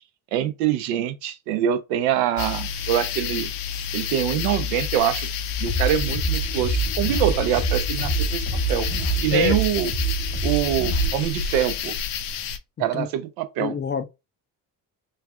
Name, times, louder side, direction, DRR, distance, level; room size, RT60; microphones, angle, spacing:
voice 1, 0.3-3.5 3.9-5.3 5.6-8.9 9.2-9.9 10.4-12.0 12.8-13.7, right 11 dB, 80° right, 0.6 m, -24 dB
sound 1, 2.4-12.6, left 8 dB, 70° left, 0.6 m, -29 dB
sound 2, 5.7-11.1, right 5 dB, 45° right, 1.2 m, -26 dB
voice 2, 13.6-14.0, left 6 dB, 25° left, 0.4 m, -26 dB
3.2 x 2.3 x 2.3 m
hypercardioid pair, 55°, 43 cm